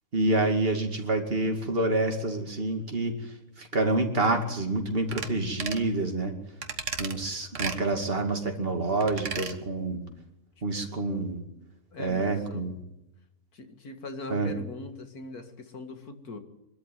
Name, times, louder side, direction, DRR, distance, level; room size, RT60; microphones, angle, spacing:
voice 1, 0.1-6.3 7.0-10.0 10.6-11.4 12.0-12.8 14.3-14.5, right 2 dB, 40° right, 3 dB, 2.7 m, -27 dB
sound 1, 5.1-5.3 5.6-5.9 6.6-7.1 7.5-7.8 9.0-9.5 9.9-10.0, right 5 dB, 55° right, 1.7 m, -34 dB
voice 2, 11.9-12.7 13.5-16.4, left 2 dB, 75° left, 7 dB, 2.4 m, -41 dB
24.0 x 13.0 x 9.3 m, 0.90 s
omnidirectional pair, 1.6 m